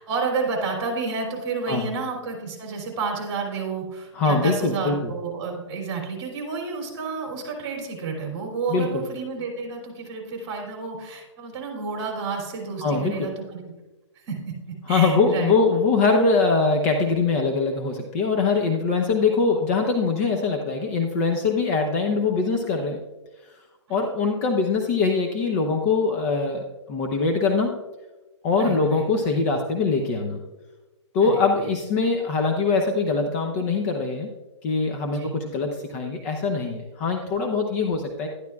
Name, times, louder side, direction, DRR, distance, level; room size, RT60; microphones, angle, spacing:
voice 1, 0.0-13.7 14.3-14.5 14.9-15.5 28.6-29.0 31.2-31.4 35.1-35.3, right 4 dB, 30° right, 0 dB, 3.1 m, -30 dB
voice 2, 4.1-5.1 8.7-9.0 12.8-13.3 14.9-23.0 23.9-27.8 28.4-30.4 31.1-34.3 34.6-38.3, left 4 dB, 30° left, 3 dB, 0.8 m, -23 dB
12.0 x 11.5 x 2.4 m, 1.1 s
hypercardioid pair, 155°, 16 cm